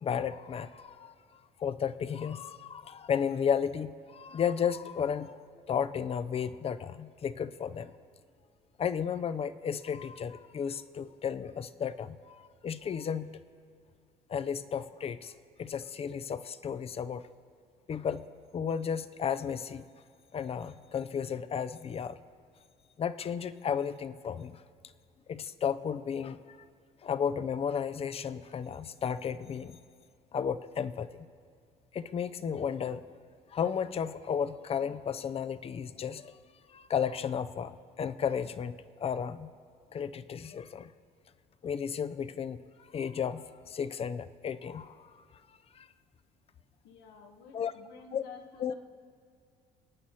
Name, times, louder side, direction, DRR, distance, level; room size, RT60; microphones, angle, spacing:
voice 1, 0.0-5.3 5.7-7.9 8.8-13.4 14.3-15.3 15.6-17.3 17.9-18.3 18.5-19.8 20.3-22.2 23.0-24.6 25.3-26.6 27.0-29.8 30.3-31.1 31.9-33.0 33.5-36.4 36.7-39.5 39.9-40.9 41.6-42.6 42.9-45.1 45.7-45.9 47.5-47.7 48.1-48.2 48.6-48.7, left 7 dB, 35° left, 13 dB, 0.6 m, -33 dB
voice 2, 46.8-48.7, left 5 dB, 90° left, 4 dB, 1.4 m, -51 dB
27.0 x 9.1 x 4.3 m, 2.3 s
cardioid pair, 110°, 17 cm